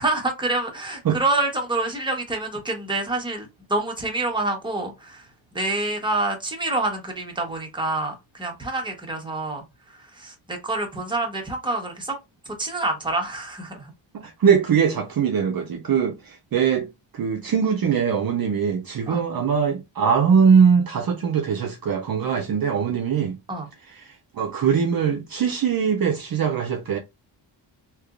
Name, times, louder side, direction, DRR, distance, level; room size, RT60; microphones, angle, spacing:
voice 1, 0.0-5.3 5.5-9.6 9.9-12.2 12.4-13.9 19.1-19.2 23.5-23.7, right 2 dB, 10° right, 1.0 m, -27 dB
voice 2, 14.1-23.4 24.0-27.0, right 6 dB, 50° right, 0.6 m, -21 dB
3.4 x 2.9 x 2.4 m
wide cardioid pair, 120°, 47 cm